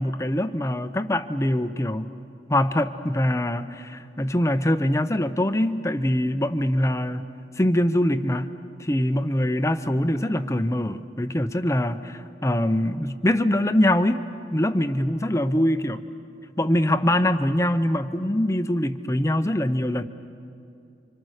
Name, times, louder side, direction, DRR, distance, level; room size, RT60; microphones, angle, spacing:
voice 1, 0.0-2.1 2.5-7.3 7.6-8.5 8.8-14.2 14.5-16.0 16.6-20.0, left 1 dB, 15° left, 10 dB, 0.7 m, -23 dB
30.0 x 25.5 x 6.5 m, 2.5 s
head